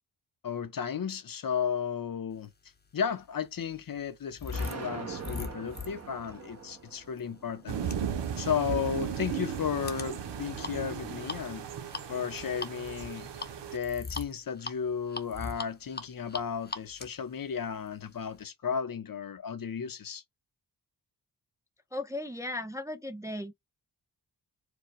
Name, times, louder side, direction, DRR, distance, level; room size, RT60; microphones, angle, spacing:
voice 1, 0.4-2.5 2.9-7.8 8.4-11.7 12.1-13.3 13.7-20.2, left 7 dB, 55° left, 0.9 m, -34 dB
sound 1, 2.8-18.4, left 4 dB, 25° left, 0.9 m, -42 dB
sound 2, 4.5-10.7, right 5 dB, 35° right, 1.1 m, -45 dB
sound 3, 7.7-13.8, right 8 dB, 80° right, 1.0 m, -36 dB
voice 2, 21.9-23.5, left 1 dB, 10° right, 0.4 m, -36 dB
4.8 x 2.3 x 4.6 m
wide cardioid pair, 120°, 41 cm